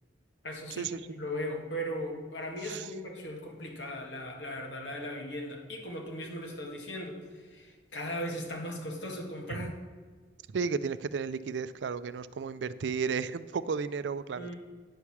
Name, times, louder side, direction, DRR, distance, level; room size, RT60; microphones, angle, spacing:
voice 1, 0.4-9.8 14.4-14.6, equal, 80° left, 1 dB, 1.8 m, -38 dB
voice 2, 10.5-14.5, right 5 dB, 75° right, 15 dB, 0.4 m, -33 dB
10.0 x 4.8 x 7.1 m, 1.5 s
head